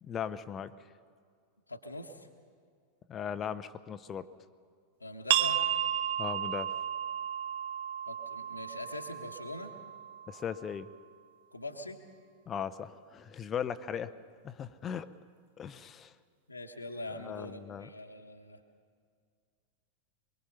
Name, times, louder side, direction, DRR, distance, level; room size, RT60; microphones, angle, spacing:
voice 1, 0.0-0.7 3.1-4.3 6.2-6.7 10.3-10.9 12.5-14.1 14.4-15.1 15.6-16.1 17.2-17.9, left 8 dB, 25° left, 13 dB, 0.8 m, -38 dB
voice 2, 1.7-2.3 5.0-5.6 8.1-9.7 11.5-12.0 13.9-14.0 16.5-18.6, left 1 dB, 85° left, 2 dB, 1.4 m, -43 dB
sound 1, 5.3-10.7, right 10 dB, 55° right, 0.8 m, -33 dB
23.0 x 23.0 x 5.8 m, 2.1 s
figure-of-eight pair, 90°, 0 cm